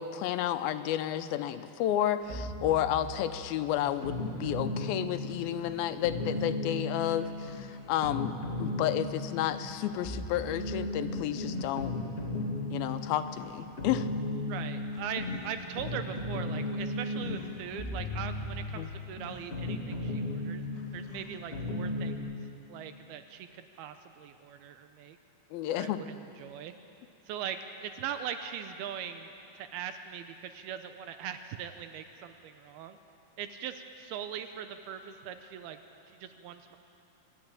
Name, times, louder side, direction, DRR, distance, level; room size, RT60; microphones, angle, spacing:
voice 1, 0.0-11.9 12.7-14.1 18.8-18.9 25.5-26.0, left 11 dB, 80° left, 10 dB, 2.5 m, -31 dB
sound 1, 2.3-22.2, left 2 dB, 20° left, 1.9 m, -36 dB
voice 2, 14.5-20.6 20.9-22.4 22.7-25.2 25.7-26.7 27.3-33.0 33.4-35.8 36.1-36.8, right 9 dB, 80° right, 8 dB, 2.6 m, -41 dB
27.0 x 11.5 x 8.9 m, 2.8 s
omnidirectional pair, 4.5 m